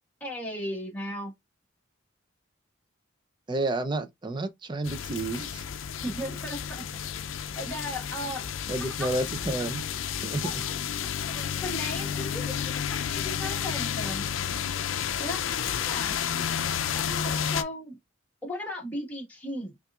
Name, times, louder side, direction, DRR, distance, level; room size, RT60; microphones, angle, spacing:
voice 1, 0.2-1.3 6.0-6.8 7.6-8.5 9.0-9.1 10.4-10.7 11.3-14.3 15.2-15.4 15.8-16.2 16.9-18.0 18.4-19.8, left 1 dB, 10° left, 1.4 m, -36 dB
voice 2, 3.5-5.6 8.7-9.8 10.2-10.5, right 2 dB, 25° right, 0.5 m, -30 dB
sound 1, 4.8-17.6, left 8 dB, 80° left, 0.5 m, -31 dB
5.6 x 2.5 x 2.3 m
head